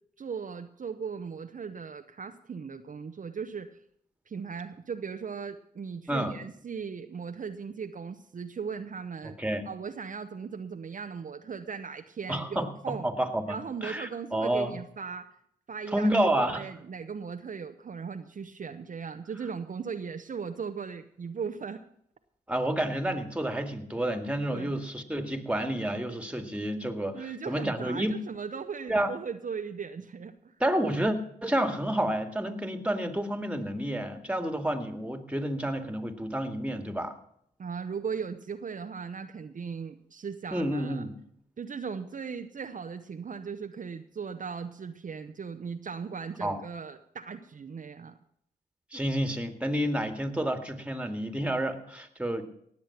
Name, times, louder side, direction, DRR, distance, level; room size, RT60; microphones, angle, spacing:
voice 1, 0.2-3.8 4.3-9.4 9.6-13.1 13.5-15.3 15.7-16.1 16.4-21.8 24.5-24.8 27.1-30.5 37.6-41.1 41.6-48.2, right 6 dB, 50° right, 7 dB, 0.8 m, -38 dB
voice 2, 9.2-9.6 12.3-14.7 15.9-16.6 22.5-28.2 28.9-29.1 30.6-31.2 31.4-37.2 40.5-41.1 46.4-46.6 48.9-52.4, right 1 dB, 5° right, 8 dB, 2.1 m, -30 dB
18.5 x 7.4 x 5.8 m, 0.69 s
cardioid pair, 50°, 17 cm